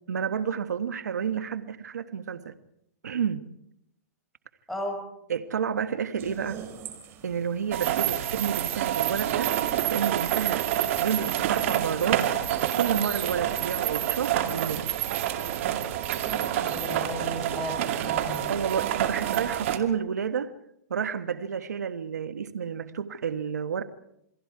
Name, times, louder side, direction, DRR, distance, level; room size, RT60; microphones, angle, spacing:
voice 1, 0.1-2.5 3.0-3.5 5.3-6.6 7.2-9.6 9.9-10.7 11.0-12.3 12.6-14.9 18.5-20.5 20.9-23.8, right 7 dB, 85° right, 1.5 m, -30 dB
sound 1, 6.2-13.9, right 8 dB, 25° right, 3.6 m, -47 dB
sound 2, 7.7-19.8, right 11 dB, 50° right, 2.5 m, -28 dB
voice 2, 16.2-18.5, left 1 dB, ahead, 6.0 m, -35 dB
28.0 x 22.0 x 4.8 m
hypercardioid pair, 150°, 9 cm